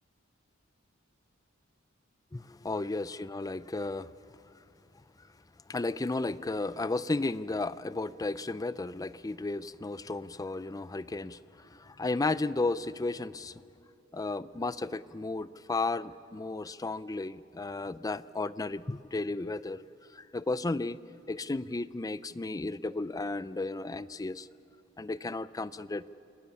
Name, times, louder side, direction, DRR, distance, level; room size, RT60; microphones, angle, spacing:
voice 1, 2.3-3.0 3.3-4.1 5.7-13.6 14.1-19.8 20.1-21.0 21.3-24.5 25.0-26.1, left 2 dB, 15° left, 16 dB, 0.4 m, -34 dB
28.0 x 21.5 x 7.1 m, 2.8 s
head